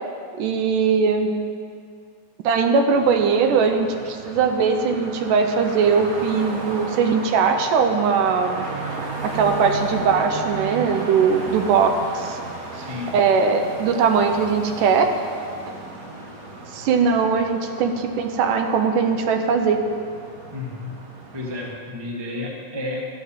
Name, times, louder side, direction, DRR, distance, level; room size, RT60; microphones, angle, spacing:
voice 1, 0.4-1.3 2.4-8.7 9.2-12.4 13.1-15.1 16.7-19.8, right 5 dB, 80° right, 6 dB, 2.4 m, -20 dB
sound 1, 3.0-21.7, right 3 dB, 60° right, 0.9 m, -35 dB
voice 2, 12.7-13.1 20.5-21.0 21.3-23.1, left 2 dB, 20° right, -2 dB, 0.6 m, -31 dB
12.5 x 8.0 x 7.4 m, 2.3 s
omnidirectional pair, 3.8 m